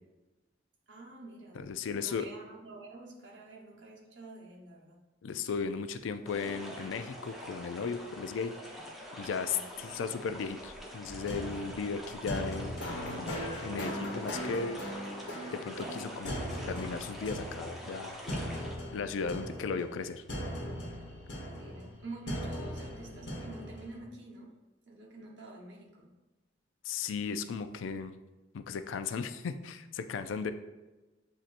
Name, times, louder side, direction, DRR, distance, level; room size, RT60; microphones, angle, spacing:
voice 1, 0.9-5.0 9.4-9.8 21.5-24.6 24.9-26.1, right 2 dB, 70° right, -2 dB, 1.1 m, -48 dB
voice 2, 1.6-2.3 5.2-8.5 9.2-13.3 13.6-14.8 15.5-18.2 18.9-20.2 26.8-28.1 28.5-30.5, left 5 dB, 90° left, 10 dB, 0.4 m, -36 dB
sound 1, 6.3-18.8, equal, ahead, 0.6 m, -45 dB
sound 2, 11.0-24.0, equal, 75° left, 1.1 m, -39 dB
7.3 x 2.6 x 2.5 m, 1.1 s
head